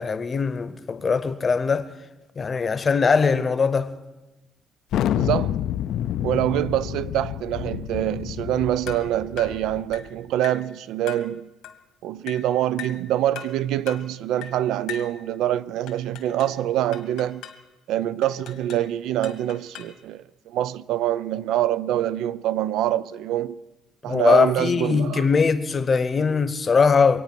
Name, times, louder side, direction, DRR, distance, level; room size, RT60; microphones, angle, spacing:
voice 1, 0.0-1.9 2.4-3.9 24.1-27.2, left 5 dB, 25° left, 0.8 m, -21 dB
Thunder, 4.9-10.1, left 11 dB, 65° left, 0.4 m, -28 dB
voice 2, 5.1-5.6 6.2-11.5 12.0-17.4 17.9-23.6 24.0-25.3, right 12 dB, 80° right, 0.5 m, -25 dB
sound 1, 8.9-9.1 9.4-9.6 9.9-10.1 10.4-10.7 11.1-11.3 11.6-11.8 12.3-12.5 12.8-13.0 13.3-13.6 13.9-14.1 14.4-14.6 14.9-15.1 15.9-16.6 16.9-17.6 18.2-18.9 19.2-20.0, left 10 dB, 90° left, 1.7 m, -39 dB
24.0 x 9.3 x 6.0 m
cardioid pair, 165°, 0 cm